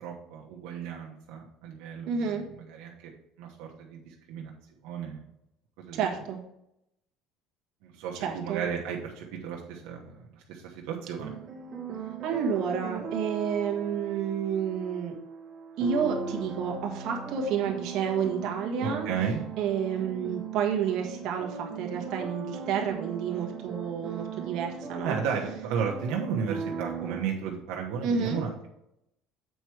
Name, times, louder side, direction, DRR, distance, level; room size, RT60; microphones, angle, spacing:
voice 1, 0.0-2.9 3.4-4.5 4.8-5.2 5.8-6.1 7.8-11.3 18.8-19.4 25.0-28.7, right 7 dB, 75° right, -2 dB, 1.2 m, -34 dB
voice 2, 2.1-2.4 5.9-6.4 8.1-8.6 12.2-15.1 15.8-19.1 19.6-25.2 28.0-28.4, right 7 dB, 55° right, 0 dB, 1.4 m, -30 dB
sound 1, 11.2-27.2, right 5 dB, 35° right, 1.5 m, -38 dB
8.0 x 4.6 x 4.8 m, 0.83 s
cardioid pair, 160°, 0 cm